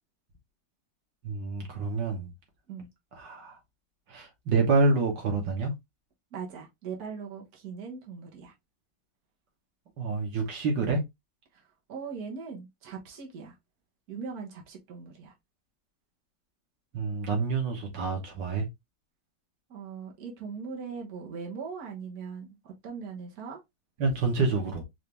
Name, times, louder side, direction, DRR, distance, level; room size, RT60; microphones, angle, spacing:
voice 1, 1.2-2.3 3.2-3.6 4.1-5.7 10.0-11.0 16.9-18.7 24.0-24.8, right 3 dB, 85° right, 2.1 m, -27 dB
voice 2, 6.3-8.5 11.5-13.5 14.1-15.3 19.7-23.6, right 5 dB, 60° right, 1.7 m, -40 dB
4.8 x 2.7 x 3.3 m
omnidirectional pair, 1.9 m